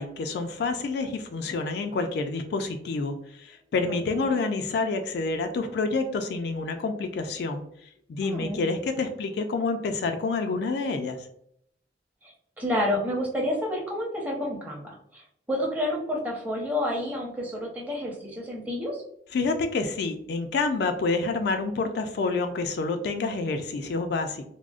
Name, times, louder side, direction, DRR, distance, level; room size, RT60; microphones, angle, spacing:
voice 1, 0.0-7.6 8.1-11.2 19.3-24.4, left 3 dB, 60° left, 6 dB, 0.3 m, -28 dB
voice 2, 3.9-4.3 8.2-8.6 12.2-19.0, left 1 dB, 10° right, -3 dB, 0.7 m, -30 dB
3.5 x 2.0 x 2.4 m, 0.70 s
head